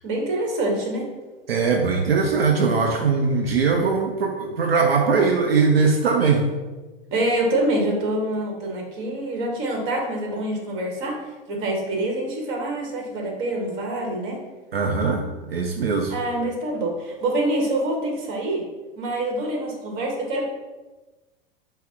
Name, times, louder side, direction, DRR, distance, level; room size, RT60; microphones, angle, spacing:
voice 1, 0.0-1.1 7.1-11.2 11.5-14.4 16.1-18.7 19.0-20.5, right 1 dB, 40° right, 0 dB, 1.2 m, -26 dB
voice 2, 1.5-6.5 14.7-15.2 15.5-16.1, right 4 dB, 80° right, 1 dB, 0.5 m, -20 dB
5.1 x 2.1 x 3.7 m, 1.2 s
figure-of-eight pair, 95°, 29 cm